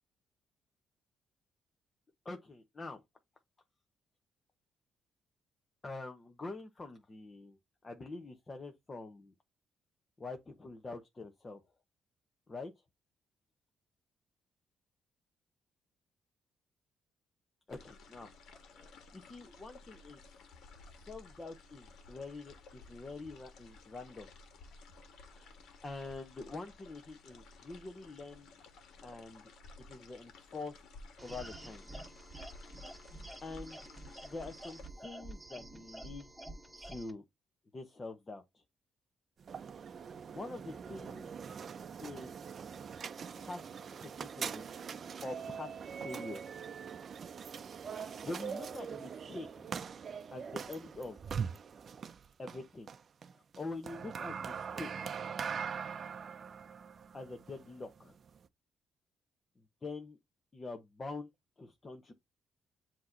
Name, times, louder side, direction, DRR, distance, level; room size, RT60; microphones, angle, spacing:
voice 1, 2.2-3.0 5.8-7.6 7.8-9.3 10.2-11.6 12.5-12.7 17.7-18.3 18.7-20.2 21.0-24.3 25.3-25.5 25.8-28.5 29.0-29.5 29.9-30.8 31.2-31.9 33.4-33.9 34.2-36.3 36.8-37.2 37.7-38.6 40.3-41.3 42.0-42.3 43.4-43.6 43.9-44.7 45.2-46.4 47.8-48.0 48.2-49.7 50.3-51.2 52.4-52.9 53.3-55.1 57.1-58.1 59.8-60.2 60.5-61.3 61.6-62.1, left 3 dB, 30° left, 1.1 m, -45 dB
sound 1, 17.7-34.9, left 3 dB, 75° left, 1.5 m, -56 dB
sound 2, 31.2-37.1, right 1 dB, 10° right, 2.0 m, -49 dB
sound 3, 39.4-58.5, right 6 dB, 50° right, 0.6 m, -42 dB
7.5 x 3.1 x 4.2 m
cardioid pair, 90°, 0 cm